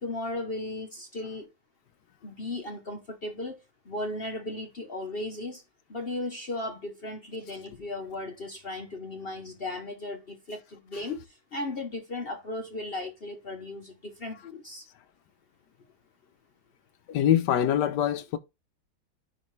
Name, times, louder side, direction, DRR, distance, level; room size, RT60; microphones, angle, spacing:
voice 1, 0.0-1.5 2.2-3.6 3.8-5.6 5.9-14.9, left 2 dB, 50° left, 0.7 m, -36 dB
voice 2, 17.1-18.4, left 10 dB, 65° left, 1.2 m, -24 dB
9.9 x 3.5 x 3.2 m
omnidirectional pair, 2.2 m